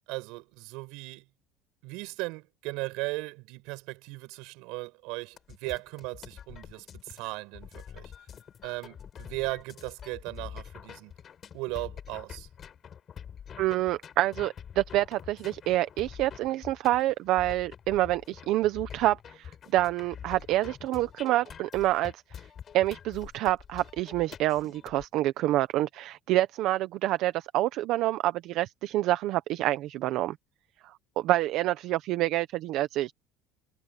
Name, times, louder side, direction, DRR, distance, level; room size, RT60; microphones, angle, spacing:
voice 1, 0.1-1.2 1.8-8.1 8.6-11.1 11.5-12.5, right 24 dB, 75° right, 6.8 m, -37 dB
sound 1, 5.4-25.1, left 8 dB, 30° left, 7.9 m, -46 dB
voice 2, 13.6-22.2 22.7-30.4 31.2-33.1, right 15 dB, 55° right, 0.8 m, -27 dB
cardioid pair, 165°, 0 cm